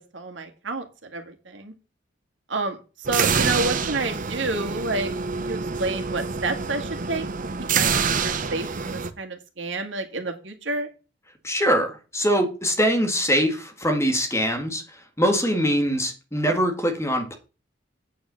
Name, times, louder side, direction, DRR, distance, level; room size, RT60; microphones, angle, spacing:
voice 1, 0.1-1.7 2.5-5.1 5.4-7.3 7.6-10.9, right 3 dB, 90° right, 4 dB, 1.9 m, -30 dB
sound 1, 3.0-9.1, right 5 dB, 45° right, 0.8 m, -26 dB
voice 2, 11.4-14.8 15.2-17.3, equal, 15° left, 5 dB, 1.8 m, -23 dB
8.7 x 5.4 x 6.8 m, 0.33 s
head